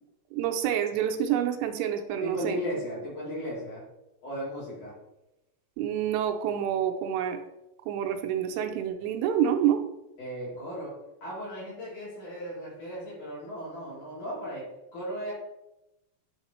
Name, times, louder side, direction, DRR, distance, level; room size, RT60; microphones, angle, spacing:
voice 1, 0.3-2.6 5.8-7.4 7.8-9.8, right 9 dB, 85° right, 5 dB, 2.8 m, -27 dB
voice 2, 2.2-3.8 4.2-4.9 10.2-15.3, equal, 50° left, -8 dB, 3.5 m, -36 dB
10.5 x 3.6 x 3.0 m, 0.94 s
omnidirectional pair, 5.0 m